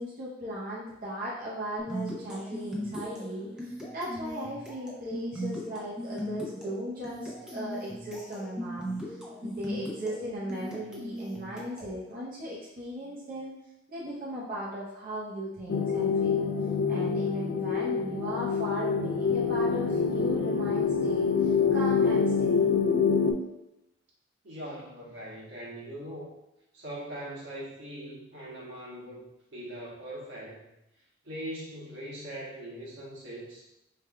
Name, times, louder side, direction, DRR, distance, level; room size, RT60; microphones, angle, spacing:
voice 1, 0.0-13.6 13.9-16.5 16.9-22.7, equal, 45° right, -7 dB, 0.8 m, -37 dB
sound 1, 1.8-12.0, equal, 5° right, 0.7 m, -38 dB
sound 2, 15.7-23.3, left 5 dB, 55° left, 0.4 m, -26 dB
voice 2, 24.4-26.3 26.7-29.3 29.5-30.7 31.2-33.6, right 1 dB, 75° right, -6 dB, 1.4 m, -41 dB
4.5 x 3.4 x 2.3 m, 0.88 s
head